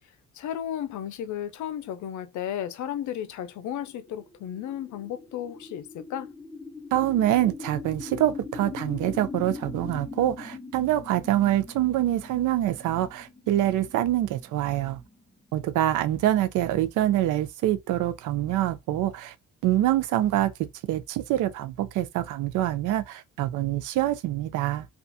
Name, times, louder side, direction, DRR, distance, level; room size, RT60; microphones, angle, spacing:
voice 1, 0.3-6.3, left 10 dB, 70° left, 0.5 m, -34 dB
sound 1, 3.9-15.7, left 4 dB, 5° left, 0.6 m, -42 dB
voice 2, 6.9-15.0 15.5-19.3 19.6-20.5 20.9-24.9, right 13 dB, 80° right, 0.5 m, -25 dB
2.4 x 2.4 x 2.6 m
cardioid pair, 90°, 30 cm